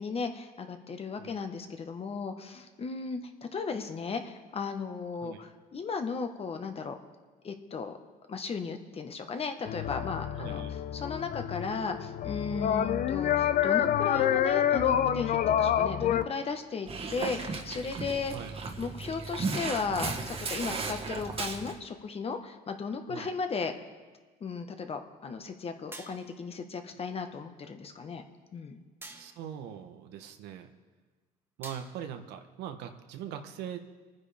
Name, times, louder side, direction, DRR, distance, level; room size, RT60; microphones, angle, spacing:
voice 1, 0.0-7.0 7.4-7.9 8.3-10.6 10.9-18.3 18.8-23.7 24.4-28.2 28.5-28.8, left 5 dB, 35° left, 6 dB, 1.2 m, -35 dB
sound 1, 9.7-16.2, left 10 dB, 55° left, 0.6 m, -27 dB
voice 2, 10.4-10.7 16.0-16.2 18.3-18.5 23.1-23.3 29.1-30.7 31.6-33.8, right 9 dB, 90° right, 6 dB, 1.1 m, -41 dB
Dog, 16.9-21.8, right 4 dB, 35° right, 1.5 m, -35 dB
sound 2, 25.9-26.5 29.0-29.6 31.6-32.2, right 2 dB, 15° right, 1.2 m, -48 dB
26.0 x 9.7 x 3.5 m, 1.4 s
cardioid pair, 110°, 17 cm